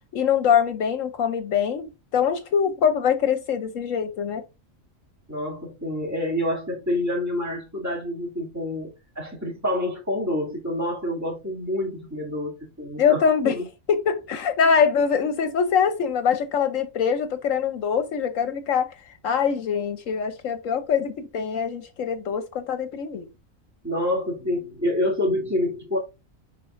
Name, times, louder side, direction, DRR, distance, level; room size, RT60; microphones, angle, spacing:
voice 1, 0.1-4.4 13.0-13.6 13.9-18.9 19.2-23.3, left 7 dB, 75° left, 1.1 m, -23 dB
voice 2, 5.3-8.9 9.2-12.5 12.8-13.7 23.8-26.0, left 1 dB, 10° right, 2.5 m, -27 dB
10.5 x 4.1 x 2.5 m
omnidirectional pair, 1.4 m